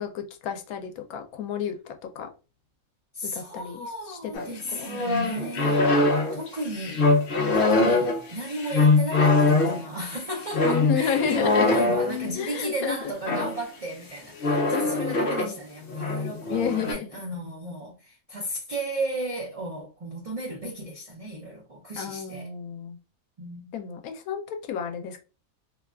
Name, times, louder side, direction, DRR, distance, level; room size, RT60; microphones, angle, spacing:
voice 1, 0.0-2.3 3.2-4.9 10.6-11.8 12.3-13.1 14.7-15.5 16.5-17.1 22.0-23.0 23.7-25.2, left 7 dB, 90° left, 1.0 m, -31 dB
voice 2, 3.1-5.9 6.3-7.1 7.5-22.5 23.4-23.8, right 1 dB, 60° right, 0.3 m, -34 dB
sound 1, 4.3-12.5 13.3-13.6 14.4-15.6 15.9-16.9, left 3 dB, 50° left, 0.7 m, -23 dB
2.8 x 2.3 x 2.3 m
omnidirectional pair, 1.5 m